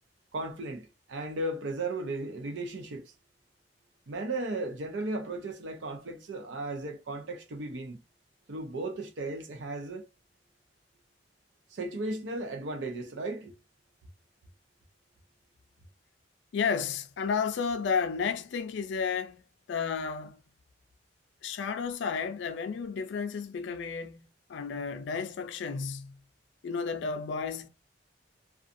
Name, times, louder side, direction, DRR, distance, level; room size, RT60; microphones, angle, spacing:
voice 1, 0.3-3.0 4.1-8.0 8.5-10.0 11.7-13.5, right 2 dB, 80° right, 0.5 m, -35 dB
voice 2, 16.5-19.4 19.7-20.4 21.4-26.2 26.6-27.7, left 5 dB, 75° left, 0.4 m, -32 dB
2.5 x 2.3 x 2.5 m
head